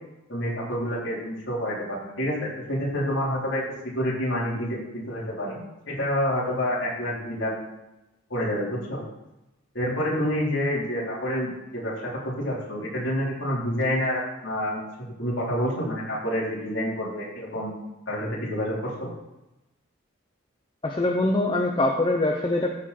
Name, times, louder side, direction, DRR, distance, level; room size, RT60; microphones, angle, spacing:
voice 1, 0.3-3.6 4.0-5.6 5.9-7.5 8.3-9.0 9.7-14.8 15.2-17.7 18.1-19.1, equal, 65° left, -6 dB, 3.9 m, -28 dB
voice 2, 20.8-22.7, left 2 dB, 25° left, 2 dB, 0.7 m, -23 dB
14.5 x 5.0 x 4.3 m, 0.97 s
head